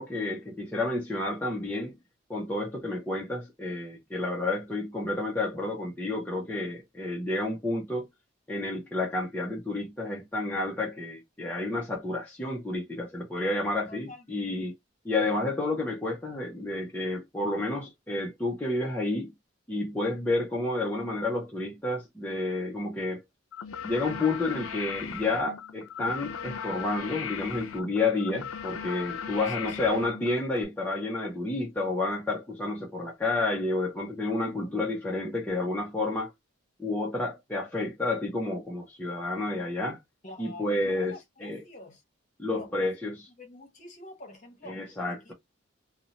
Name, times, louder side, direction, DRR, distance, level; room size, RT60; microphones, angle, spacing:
voice 1, 0.0-2.0 2.3-8.1 8.5-14.7 15.0-19.3 19.7-23.2 23.8-36.3 36.8-40.0 40.4-41.1 41.4-41.6 42.4-43.1 44.7-45.3, left 2 dB, 10° left, 0.5 m, -30 dB
voice 2, 13.9-14.4 29.3-29.9 34.4-34.7 40.2-42.0 42.5-42.9 43.3-45.3, left 1 dB, 35° left, 0.9 m, -47 dB
sound 1, 23.5-30.6, left 7 dB, 85° left, 0.4 m, -38 dB
2.6 x 2.0 x 2.8 m
head